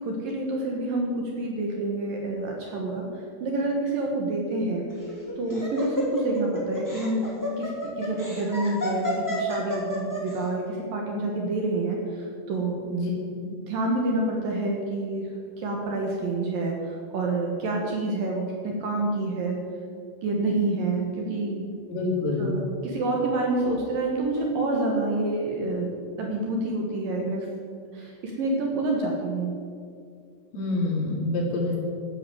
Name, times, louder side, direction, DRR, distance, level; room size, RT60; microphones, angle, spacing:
voice 1, 0.0-4.8 5.4-7.2 7.6-12.8 13.4-15.3 15.6-19.6 20.2-21.7 22.4-25.9 26.2-27.5 27.9-29.5, right 2 dB, 60° right, 0 dB, 2.7 m, -28 dB
Laughter, 4.9-10.4, left 1 dB, 10° left, 1.2 m, -30 dB
voice 2, 21.9-22.5 30.5-31.8, left 2 dB, 80° left, -3 dB, 5.8 m, -26 dB
13.5 x 9.9 x 7.8 m, 2.3 s
omnidirectional pair, 5.7 m